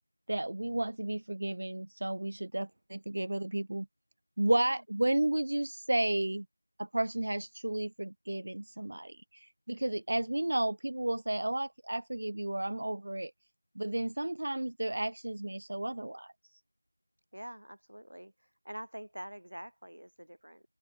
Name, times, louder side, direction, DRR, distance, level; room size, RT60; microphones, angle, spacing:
voice 1, 0.3-3.9 4.4-6.5 6.8-13.3 13.8-16.3, right 1 dB, 40° right, 0.4 m, -32 dB
voice 2, 17.3-18.3 18.6-20.6, equal, 75° right, 2.5 m, -45 dB
open air
figure-of-eight pair, 175°, 0 cm